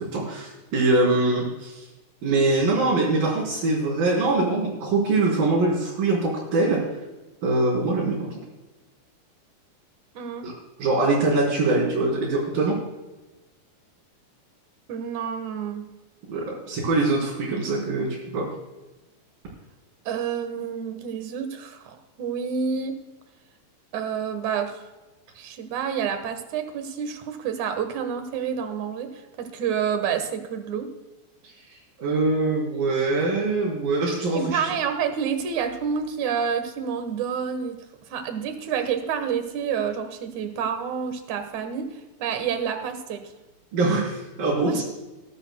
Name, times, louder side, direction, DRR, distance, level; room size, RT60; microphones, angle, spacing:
voice 1, 0.0-1.9 2.2-6.8 7.4-8.3 10.4-10.5 10.8-12.8 16.3-18.5 32.0-34.7 43.7-44.8, right 2 dB, 80° right, -8 dB, 5.6 m, -23 dB
voice 2, 10.1-10.5 14.9-15.9 20.1-23.0 23.9-24.8 25.4-30.9 34.3-37.8 38.1-41.9 42.2-43.2 44.6-44.8, right 7 dB, 60° right, 7 dB, 2.6 m, -28 dB
20.0 x 12.0 x 2.3 m, 1.1 s
omnidirectional pair, 4.0 m